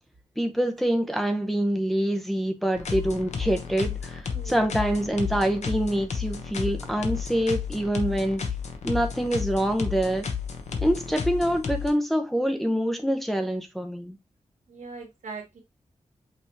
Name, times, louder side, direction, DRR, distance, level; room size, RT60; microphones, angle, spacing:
voice 1, 0.4-8.5 8.8-10.3 10.8-14.2, right 1 dB, ahead, 0.6 m, -26 dB
sound 1, 2.7-11.9, left 6 dB, 65° left, 0.9 m, -32 dB
voice 2, 4.3-4.8 14.7-15.6, right 4 dB, 90° right, 1.7 m, -40 dB
5.5 x 3.4 x 2.7 m
wide cardioid pair, 125°, 13 cm